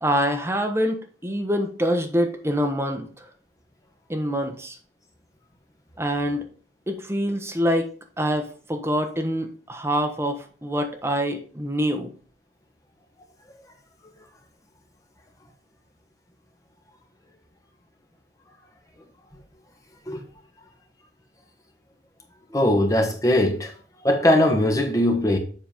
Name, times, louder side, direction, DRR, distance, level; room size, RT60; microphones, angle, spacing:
voice 1, 0.0-3.3 4.1-4.8 6.0-6.5 6.9-7.9 8.2-12.1, equal, 15° right, 1.0 m, -25 dB
voice 2, 22.5-23.7 24.0-25.4, left 1 dB, 20° left, 1.2 m, -20 dB
7.6 x 4.0 x 5.1 m
head